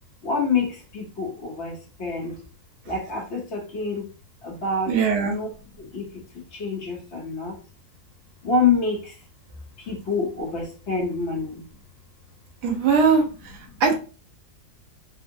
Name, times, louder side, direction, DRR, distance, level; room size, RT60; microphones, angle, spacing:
voice 1, 0.2-2.4 2.9-4.1 4.4-7.6 8.4-9.2 9.8-11.7 13.7-13.8, left 4 dB, 50° left, -1 dB, 1.1 m, -27 dB
voice 2, 4.9-5.4 12.6-13.5 13.8-13.9, right 5 dB, 90° right, 3 dB, 1.3 m, -20 dB
3.6 x 2.0 x 2.6 m, 0.35 s
omnidirectional pair, 1.7 m